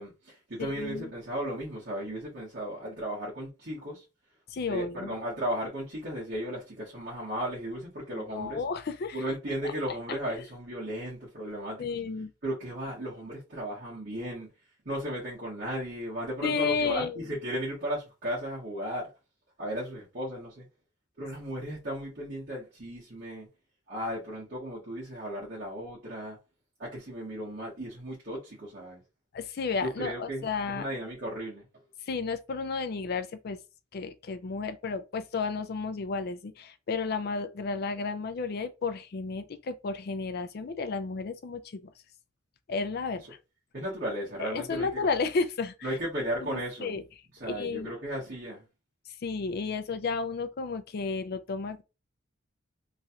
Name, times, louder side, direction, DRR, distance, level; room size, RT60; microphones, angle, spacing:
voice 1, 0.0-4.0 4.7-8.6 9.1-11.8 12.4-14.5 14.8-19.1 19.6-20.6 21.2-23.5 23.9-26.4 26.8-29.0 29.8-31.6 43.7-45.1 45.8-47.0 47.3-48.6, equal, 50° right, 1.4 m, -35 dB
voice 2, 0.6-1.1 4.5-5.1 8.2-9.2 11.8-12.3 16.4-17.3 29.3-30.9 32.1-33.6 33.9-41.9 42.7-43.2 44.4-45.9 46.5-47.0 47.5-47.9 49.2-51.8, left 4 dB, 50° left, 0.4 m, -32 dB
3.1 x 2.4 x 2.8 m
head